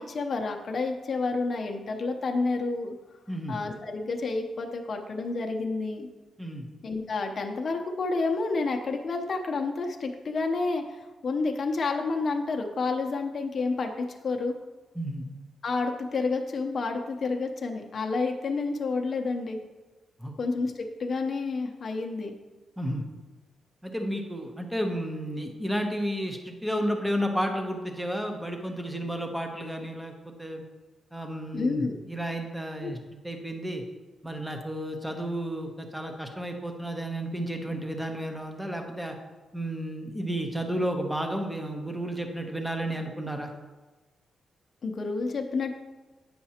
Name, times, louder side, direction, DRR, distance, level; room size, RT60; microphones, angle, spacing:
voice 1, 0.0-2.9 3.5-6.1 6.8-14.5 15.6-19.6 20.4-20.7 21.0-22.3 31.5-32.0 32.8-32.9 44.8-45.8, left 3 dB, 45° left, 3 dB, 0.7 m, -29 dB
voice 2, 15.0-15.3 20.2-20.3 22.8-23.0 23.8-30.6 31.1-33.0 33.2-33.8 34.2-39.2 39.5-43.5, equal, 5° right, 4 dB, 0.8 m, -32 dB
8.5 x 5.8 x 2.8 m, 1.2 s
cardioid pair, 120°, 0 cm